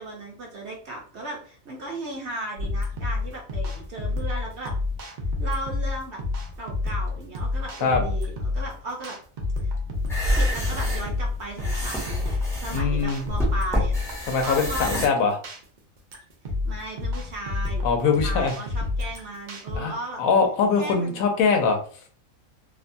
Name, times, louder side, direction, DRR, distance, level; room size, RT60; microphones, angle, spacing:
voice 1, 0.0-4.7 5.4-6.2 6.6-9.2 10.3-14.0 14.4-15.0 16.6-20.2 20.8-21.3, right 2 dB, 60° right, 0 dB, 0.8 m, -36 dB
sound 1, 2.6-19.8, left 3 dB, 85° right, 0.4 m, -29 dB
sound 2, 10.0-15.1, equal, 5° left, 0.4 m, -27 dB
voice 2, 12.7-13.3 14.3-15.4 17.8-18.5 19.7-19.9 20.2-21.8, left 5 dB, 75° left, 3 dB, 1.0 m, -22 dB
2.7 x 2.2 x 2.5 m, 0.43 s
omnidirectional pair, 1.5 m